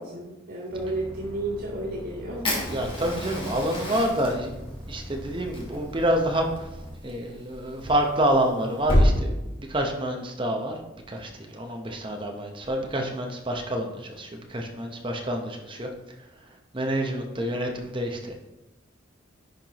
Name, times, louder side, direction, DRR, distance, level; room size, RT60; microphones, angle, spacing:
voice 1, 0.0-2.7, right 2 dB, 85° right, -11 dB, 2.2 m, -32 dB
sound 1, 0.7-7.0, equal, ahead, 1.0 m, -42 dB
Fire, 2.4-9.1, equal, 25° left, 1.4 m, -29 dB
voice 2, 2.7-4.5 4.9-6.7 7.0-10.8 11.1-15.9 16.7-18.3, right 1 dB, 25° right, 2 dB, 0.8 m, -28 dB
10.5 x 4.5 x 3.0 m, 1.0 s
head